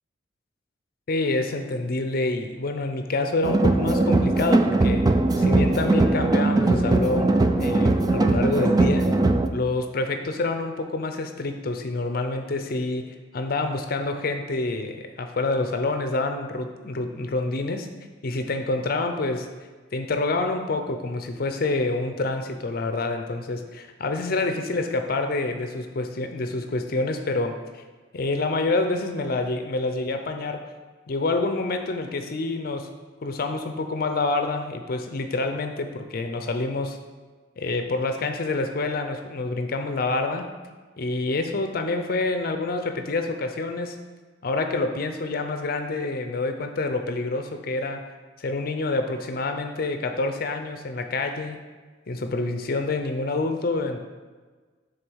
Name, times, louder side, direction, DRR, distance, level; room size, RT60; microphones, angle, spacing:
voice 1, 1.1-5.1 5.4-9.1 9.5-17.9 18.2-19.5 19.9-27.8 28.1-30.7 31.1-32.9 33.2-37.0 37.6-40.5 41.0-44.0 44.4-48.1 48.4-51.6 52.1-54.0, left 2 dB, 55° left, 6 dB, 0.5 m, -27 dB
sound 1, 3.4-9.5, right 2 dB, 20° right, 0.4 m, -20 dB
6.5 x 3.8 x 6.2 m, 1.4 s
head